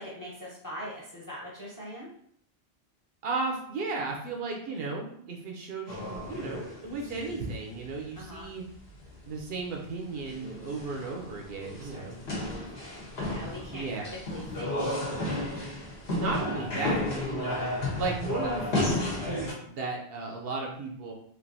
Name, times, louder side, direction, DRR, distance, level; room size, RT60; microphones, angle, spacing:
voice 1, 0.0-2.1 8.2-8.5 11.7-15.4, equal, 20° left, -5 dB, 0.7 m, -43 dB
voice 2, 3.2-8.6 9.3-12.2 13.7-14.0 16.1-17.6 18.0-21.1, right 3 dB, 65° right, 0 dB, 0.8 m, -35 dB
sound 1, 5.9-8.4 8.7-8.8 9.0-9.4 9.7-9.8 10.1-19.5, left 1 dB, 70° left, 1.1 m, -33 dB
3.3 x 2.5 x 2.6 m, 0.65 s
omnidirectional pair, 1.1 m